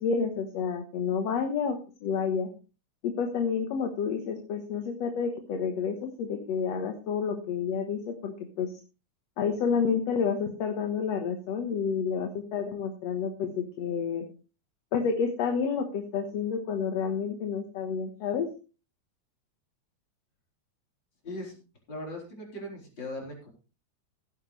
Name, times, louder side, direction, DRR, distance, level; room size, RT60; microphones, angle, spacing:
voice 1, 0.0-1.8 2.0-2.5 3.0-8.7 9.4-14.3 14.9-18.5, left 6 dB, 65° left, 5 dB, 2.4 m, -29 dB
voice 2, 21.2-21.6 21.9-23.5, left 1 dB, 35° left, 0 dB, 4.8 m, -39 dB
16.0 x 10.0 x 3.3 m, 0.34 s
omnidirectional pair, 3.4 m